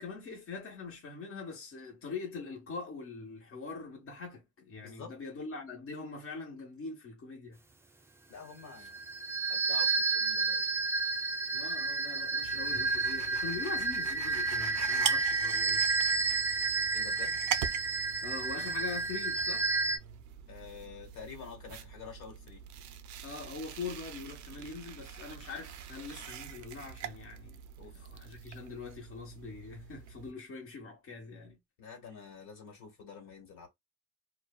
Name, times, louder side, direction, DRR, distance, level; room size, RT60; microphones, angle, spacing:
voice 1, 0.0-7.6 8.8-8.9 11.5-15.8 18.2-19.7 23.2-27.6 27.9-31.6, left 4 dB, 45° left, 1.0 m, -43 dB
voice 2, 4.8-5.1 8.3-9.0 9.5-10.6 16.9-17.4 20.5-22.6 27.8-28.0 31.8-33.7, left 6 dB, 80° left, 1.5 m, -48 dB
sound 1, 8.8-20.0, right 4 dB, 10° right, 0.4 m, -31 dB
sound 2, 12.4-30.3, right 9 dB, 80° right, 0.5 m, -43 dB
2.5 x 2.2 x 2.3 m
cardioid pair, 90°, 30 cm